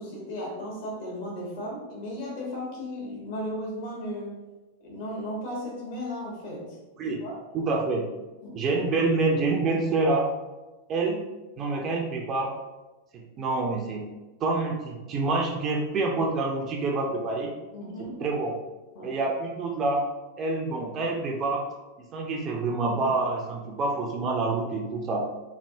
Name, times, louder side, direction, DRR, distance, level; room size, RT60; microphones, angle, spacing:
voice 1, 0.0-4.4 4.8-6.8 7.1-7.4 8.4-8.6 17.7-18.2 18.9-19.1, left 1 dB, 50° left, -4 dB, 1.3 m, -35 dB
voice 2, 7.5-8.0 8.5-10.3 10.9-11.2 11.6-12.5 13.1-14.1 14.4-17.5 18.2-18.6 19.0-20.0 20.4-21.6 22.1-25.3, right 3 dB, 30° right, 0 dB, 0.5 m, -27 dB
3.3 x 2.6 x 2.7 m, 1.1 s
figure-of-eight pair, 90°, 0 cm